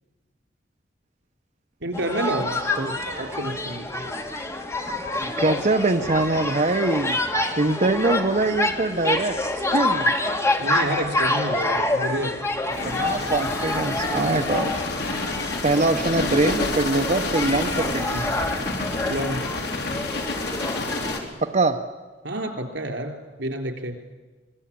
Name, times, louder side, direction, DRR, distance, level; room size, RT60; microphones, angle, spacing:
voice 1, 1.8-2.6 2.9-4.1 10.6-12.4 19.1-19.5 22.2-24.0, right 1 dB, 85° right, 5 dB, 3.7 m, -29 dB
sound 1, 1.9-21.2, left 2 dB, 15° left, 2.2 m, -27 dB
voice 2, 5.2-7.2 7.6-9.4 9.7-10.1 12.8-14.7 15.6-18.2 21.4-21.8, right 3 dB, 40° right, 6 dB, 0.9 m, -23 dB
sound 2, 12.7-21.2, left 2 dB, 65° left, 3.9 m, -29 dB
25.5 x 22.0 x 8.7 m, 1.3 s
head